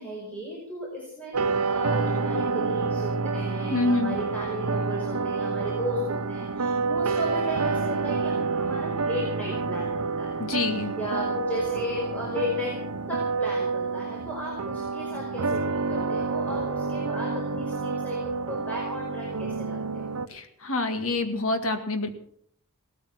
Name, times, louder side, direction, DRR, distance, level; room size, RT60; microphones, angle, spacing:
voice 1, 0.0-10.4 10.7-12.8 13.1-20.1, equal, 5° left, -5 dB, 5.2 m, -35 dB
sound 1, 1.3-20.3, right 4 dB, 80° right, 0.8 m, -28 dB
voice 2, 3.7-4.2 10.4-10.9 20.3-22.1, left 3 dB, 65° left, 7 dB, 2.0 m, -26 dB
17.5 x 13.5 x 6.0 m, 0.66 s
head